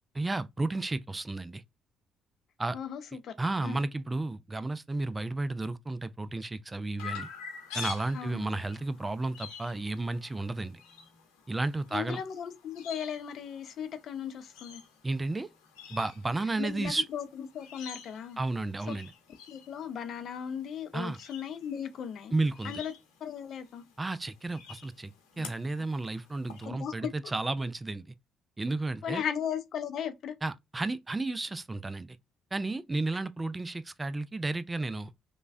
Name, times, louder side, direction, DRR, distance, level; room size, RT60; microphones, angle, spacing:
voice 1, 0.1-1.6 2.6-2.8 3.4-7.3 7.7-10.8 11.5-12.2 15.0-15.5 15.9-17.1 18.4-19.1 20.9-21.2 22.3-22.8 24.0-28.1 28.6-29.2 30.4-32.2 32.5-35.1, right 2 dB, 25° right, 0.3 m, -32 dB
voice 2, 2.7-3.3 3.6-3.8 8.1-8.5 11.9-14.8 16.6-17.2 17.5-18.4 18.9-19.0 19.5-22.3 22.6-22.9 23.2-23.8 26.7-27.3 29.0-30.4, left 8 dB, 60° left, 0.4 m, -37 dB
Chirp tweet, 7.0-26.6, left 6 dB, 80° left, 0.8 m, -48 dB
3.2 x 2.2 x 2.4 m
hypercardioid pair, 55°, 0 cm